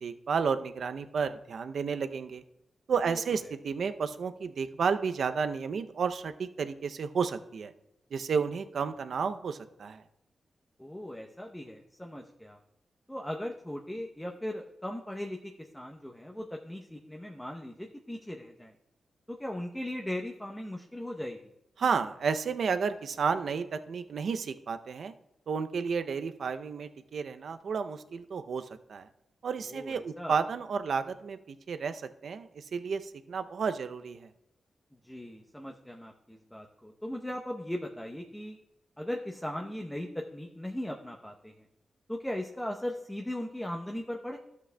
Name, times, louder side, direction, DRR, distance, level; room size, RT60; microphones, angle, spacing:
voice 1, 0.0-2.4 2.9-7.7 8.1-10.0 21.8-25.1 25.5-29.1 29.4-34.3, right 6 dB, 70° right, 9 dB, 0.5 m, -32 dB
voice 2, 10.8-12.6 13.1-18.7 19.3-21.4 29.7-30.4 35.0-38.6 39.0-41.5 42.1-44.4, left 1 dB, 10° left, 1 dB, 0.8 m, -38 dB
12.5 x 8.2 x 2.2 m, 0.86 s
cardioid pair, 75°, 0 cm